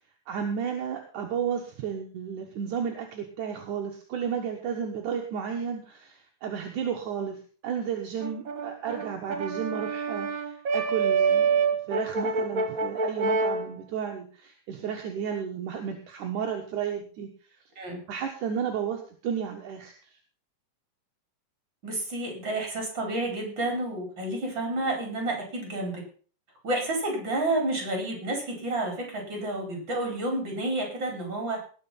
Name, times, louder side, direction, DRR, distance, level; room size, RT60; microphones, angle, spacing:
voice 1, 0.3-7.4 7.6-17.3 18.1-19.9, right 7 dB, 70° right, 2 dB, 2.8 m, -33 dB
Brass instrument, 8.2-13.7, right 5 dB, 85° right, 0.7 m, -27 dB
voice 2, 21.8-26.0 26.6-31.6, right 2 dB, 35° right, 2 dB, 5.3 m, -30 dB
19.0 x 6.5 x 5.6 m, 0.41 s
omnidirectional pair, 3.8 m